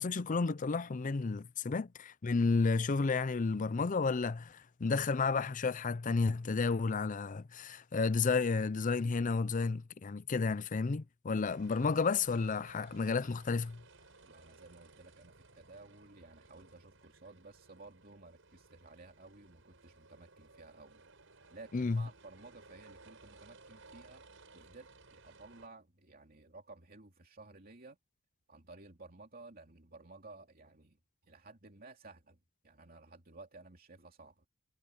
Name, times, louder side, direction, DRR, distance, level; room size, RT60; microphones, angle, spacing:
voice 1, 0.0-13.8 21.7-22.1, left 4 dB, 40° left, 0.5 m, -32 dB
sound 1, 11.4-25.7, right 3 dB, 75° right, 7.0 m, -59 dB
voice 2, 14.2-21.0 21.5-24.2 24.5-28.0 28.5-31.0 31.3-32.4 32.6-34.5, right 3 dB, 50° right, 2.8 m, -55 dB
head